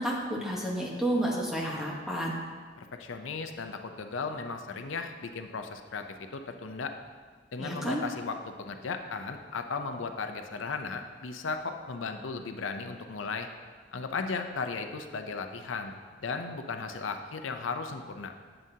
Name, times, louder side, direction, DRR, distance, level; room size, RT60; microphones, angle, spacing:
voice 1, 0.0-2.4 7.6-8.0, right 1 dB, ahead, -3 dB, 1.1 m, -31 dB
voice 2, 2.8-6.9 7.5-13.5 13.9-18.3, left 4 dB, 90° left, 6 dB, 0.6 m, -36 dB
11.0 x 7.7 x 2.8 m, 1.5 s
head